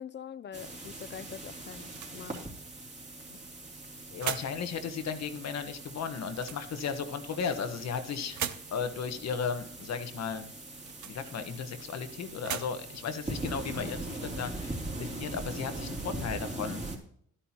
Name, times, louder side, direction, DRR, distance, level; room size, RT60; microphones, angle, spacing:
voice 1, 0.0-2.5 13.7-13.9, left 8 dB, 35° left, 16 dB, 0.6 m, -44 dB
sound 1, 0.5-17.0, right 2 dB, 25° right, 3.0 m, -41 dB
sound 2, 1.7-14.5, right 11 dB, 70° right, 0.8 m, -44 dB
voice 2, 4.1-8.4 8.7-10.5 11.0-16.9, left 6 dB, 60° left, 8 dB, 1.4 m, -35 dB
12.5 x 10.0 x 3.0 m, 0.63 s
cardioid pair, 90°, 30 cm